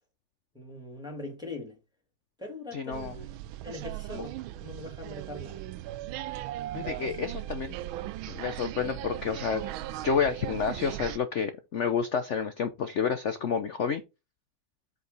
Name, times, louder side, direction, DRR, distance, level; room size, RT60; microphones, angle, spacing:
voice 1, 0.5-1.8 2.4-3.3 3.6-5.6, left 2 dB, ahead, 2.7 m, -41 dB
voice 2, 2.7-3.1 4.1-4.2 6.7-7.7 8.3-9.7 10.0-14.0, left 6 dB, 75° left, 0.6 m, -29 dB
sound 1, 2.9-11.2, right 14 dB, 90° right, 1.4 m, -38 dB
7.9 x 5.1 x 4.0 m
omnidirectional pair, 2.2 m